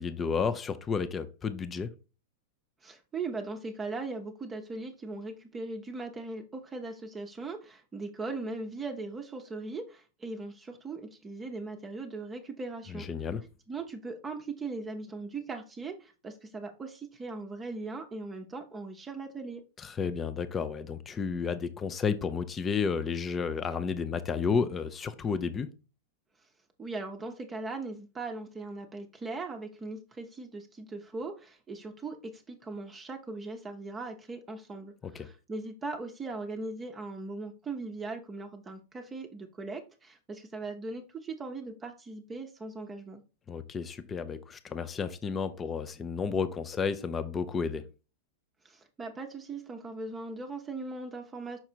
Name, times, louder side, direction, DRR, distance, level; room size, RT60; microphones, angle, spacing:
voice 1, 0.0-1.9 12.9-13.4 19.8-25.7 35.0-35.3 43.5-47.9, left 5 dB, 20° left, 0.5 m, -32 dB
voice 2, 2.8-13.1 13.7-19.6 26.8-43.2 48.6-51.6, right 3 dB, 15° right, 0.8 m, -39 dB
5.9 x 3.9 x 4.5 m
hypercardioid pair, 135°, 0 cm